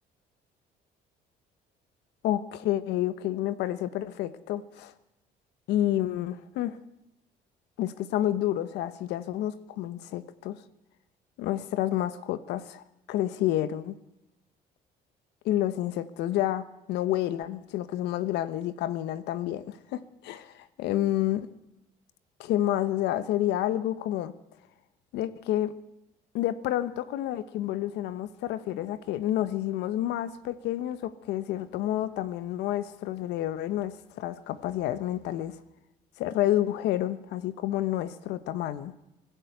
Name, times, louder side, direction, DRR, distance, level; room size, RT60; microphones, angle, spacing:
voice 1, 2.2-4.9 5.7-6.8 7.8-10.6 11.4-13.9 15.4-21.5 22.4-24.3 25.1-25.7 26.3-35.5 36.2-38.9, left 13 dB, 85° left, 1.2 m, -29 dB
24.0 x 15.0 x 8.2 m
cardioid pair, 110°, 17 cm